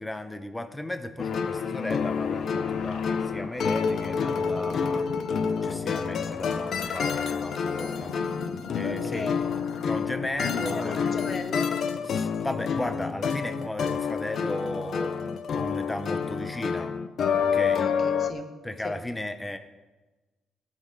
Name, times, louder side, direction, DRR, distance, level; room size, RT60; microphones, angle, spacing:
voice 1, 0.0-5.1 5.6-8.1 8.7-9.3 9.9-11.1 12.1-17.0 17.4-17.9 18.6-19.6, left 1 dB, 10° left, 8 dB, 0.8 m, -35 dB
sound 1, 1.2-18.3, left 6 dB, 60° left, 0.6 m, -28 dB
sound 2, 2.2-11.4, left 4 dB, 90° left, 1.1 m, -41 dB
voice 2, 8.8-9.6 10.5-11.7 17.8-18.6 18.8-19.0, left 4 dB, 40° left, 7 dB, 1.1 m, -35 dB
16.5 x 6.6 x 3.9 m, 1.2 s
cardioid pair, 115°, 0 cm